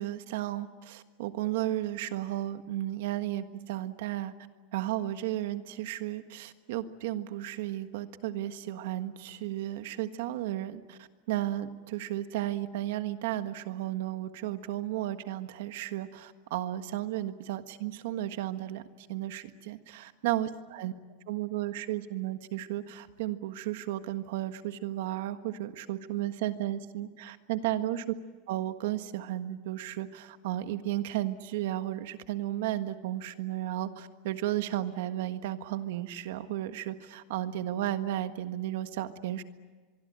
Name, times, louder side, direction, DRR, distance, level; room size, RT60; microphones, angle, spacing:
voice 1, 0.0-4.3 4.7-18.8 19.1-20.9 21.3-28.0 28.5-39.4, right 14 dB, 65° right, 10 dB, 1.5 m, -34 dB
24.5 x 23.5 x 9.0 m, 1.4 s
supercardioid pair, 175°, 0 cm